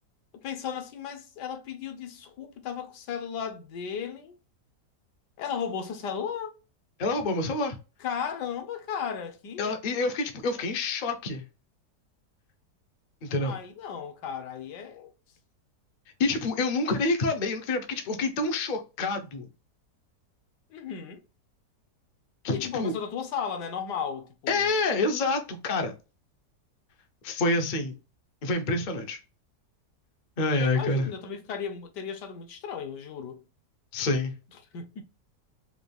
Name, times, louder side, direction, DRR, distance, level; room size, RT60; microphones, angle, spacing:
voice 1, 0.3-4.4 5.4-6.5 8.0-9.7 13.4-15.1 20.7-21.2 22.5-24.7 30.6-33.4 34.7-35.0, left 7 dB, 75° left, 1.4 m, -35 dB
voice 2, 7.0-7.8 9.6-11.4 13.2-13.6 16.2-19.5 22.4-22.9 24.5-25.9 27.2-27.9 28.4-29.2 30.4-31.1 33.9-34.3, left 2 dB, 55° left, 0.5 m, -27 dB
4.8 x 2.3 x 3.3 m
omnidirectional pair, 1.9 m